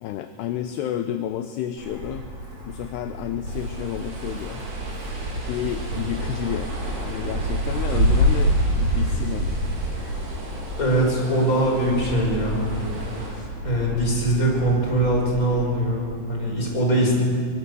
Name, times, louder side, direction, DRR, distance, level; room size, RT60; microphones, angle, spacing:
voice 1, 0.0-2.2 2.7-4.7 5.5-9.6, left 10 dB, 75° left, 8 dB, 2.7 m, -31 dB
Wind, 1.8-16.7, equal, 30° right, 5.6 m, -28 dB
sound 1, 3.5-13.3, right 1 dB, 60° right, 5.9 m, -39 dB
voice 2, 10.8-12.9 13.3-17.2, right 1 dB, 20° left, -1 dB, 5.5 m, -22 dB
23.5 x 23.0 x 6.9 m, 2.4 s
omnidirectional pair, 5.3 m